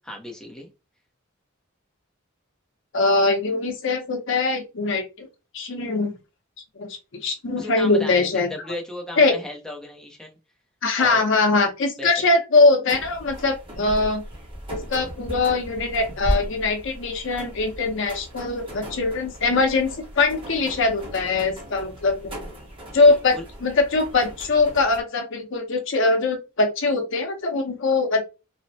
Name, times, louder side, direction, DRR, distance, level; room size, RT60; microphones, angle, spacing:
voice 1, 0.1-0.7 7.6-10.4 11.0-11.2 12.0-12.3 23.1-23.4, left 1 dB, 5° left, 0 dB, 0.6 m, -36 dB
voice 2, 2.9-5.3 5.5-6.2 6.8-8.5 9.2-9.3 10.8-14.2 14.7-22.4 22.9-28.2, left 3 dB, 65° left, 4 dB, 0.7 m, -22 dB
sound 1, 12.9-25.0, equal, 25° right, 0.9 m, -36 dB
3.1 x 2.0 x 2.7 m, 0.27 s
head